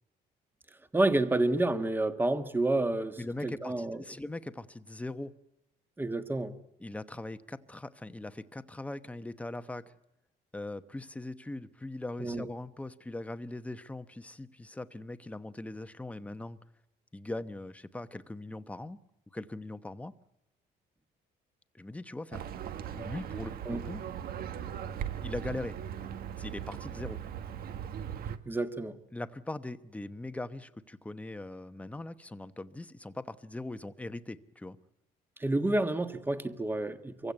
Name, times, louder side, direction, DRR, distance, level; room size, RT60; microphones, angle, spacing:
voice 1, 0.9-4.0 6.0-6.5 12.2-12.5 23.7-23.8 28.4-29.0 35.4-37.3, right 2 dB, 10° right, 1.5 m, -29 dB
voice 2, 3.2-5.3 6.8-9.9 10.5-16.6 17.1-19.0 19.3-20.1 21.7-22.4 22.9-24.0 25.2-25.8 26.4-27.2 29.1-34.8, left 2 dB, 10° left, 1.0 m, -40 dB
Livestock farm animals working animals, 22.3-28.4, right 9 dB, 60° right, 1.4 m, -39 dB
24.5 x 16.0 x 9.5 m
cardioid pair, 110°, 17 cm